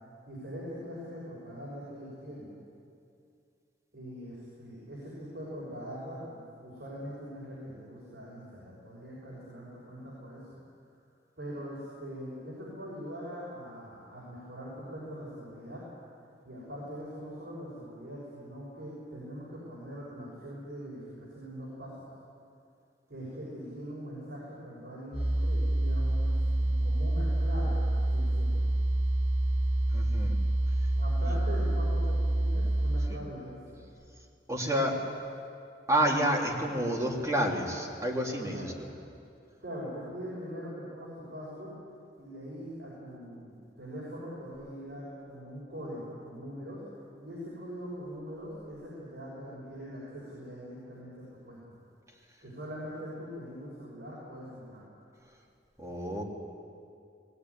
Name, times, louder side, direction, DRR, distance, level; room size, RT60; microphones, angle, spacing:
voice 1, 0.3-2.6 3.9-10.5 11.4-15.8 16.4-22.0 23.1-28.6 30.9-33.8 38.5-38.8 39.6-41.7 42.2-46.8 47.2-51.6 52.4-54.8, equal, 65° right, -6 dB, 6.2 m, -42 dB
sound 1, 25.1-33.1, right 1 dB, 85° right, 6.3 m, -27 dB
voice 2, 29.9-30.4 33.1-33.2 34.5-35.0 35.9-38.7 55.8-56.2, right 1 dB, 15° right, -2 dB, 3.3 m, -29 dB
19.5 x 19.5 x 9.8 m, 2.4 s
head